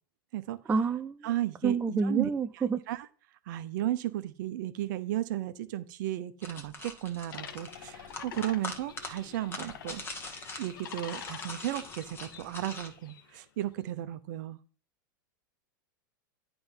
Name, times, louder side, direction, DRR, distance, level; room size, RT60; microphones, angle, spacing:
voice 1, 0.7-1.2 1.6-2.8, right 5 dB, 15° right, 0.4 m, -28 dB
voice 2, 1.2-2.3 2.9-3.1 3.5-10.0 10.6-14.6, right 14 dB, 65° right, 0.9 m, -34 dB
sound 1, 6.4-12.9, left 2 dB, 20° left, 1.4 m, -43 dB
sound 2, 7.3-13.4, left 9 dB, 75° left, 0.8 m, -47 dB
8.8 x 3.5 x 5.5 m
hypercardioid pair, 115°, 11 cm